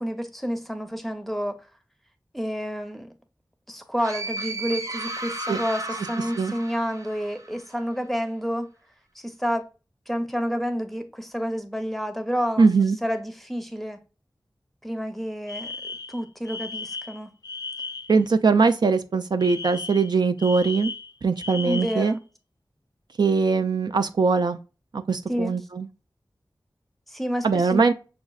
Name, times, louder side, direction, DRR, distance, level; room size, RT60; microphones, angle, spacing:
voice 1, 0.0-1.7 2.3-3.1 3.7-8.7 9.1-9.7 10.1-12.7 13.0-14.0 14.8-15.7 16.1-17.3 21.6-22.2 25.3-25.5 27.1-27.8, equal, ahead, 0.7 m, -29 dB
sound 1, 4.0-7.7, right 2 dB, 45° right, 0.7 m, -34 dB
voice 2, 12.6-13.0 18.1-20.9 21.2-22.1 23.2-24.6 24.9-25.9 27.4-27.9, right 4 dB, 65° right, 0.3 m, -21 dB
Alarm, 15.5-18.2 19.4-22.1, left 4 dB, 55° left, 0.4 m, -36 dB
5.9 x 2.4 x 2.3 m
wide cardioid pair, 50°, 8 cm